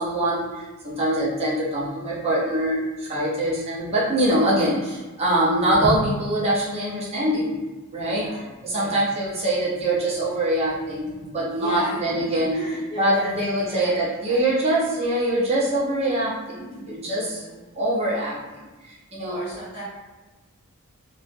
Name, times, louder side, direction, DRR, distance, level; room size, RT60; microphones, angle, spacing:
voice 1, 0.0-7.6 7.9-8.3 8.6-12.6 13.0-17.4 17.7-18.4 18.8-19.4, right 1 dB, 30° right, -7 dB, 0.7 m, -23 dB
voice 2, 8.0-9.1 10.8-14.4 17.0-17.6 19.2-19.8, equal, 15° left, -10 dB, 1.2 m, -37 dB
4.1 x 2.6 x 2.4 m, 1.2 s
head